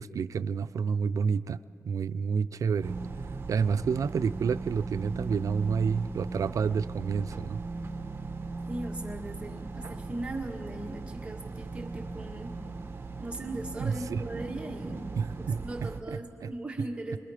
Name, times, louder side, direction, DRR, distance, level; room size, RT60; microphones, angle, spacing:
voice 1, 0.0-3.0 3.5-7.6 13.8-14.2 15.2-15.6 16.1-16.5, right 6 dB, 80° right, 14 dB, 0.4 m, -29 dB
sound 1, 2.8-16.0, right 3 dB, 40° right, 1.0 m, -38 dB
voice 2, 8.7-12.6 13.2-15.0 15.4-17.2, right 2 dB, 20° right, 0 dB, 1.7 m, -38 dB
29.0 x 22.5 x 5.0 m, 2.5 s
wide cardioid pair, 145°, 6 cm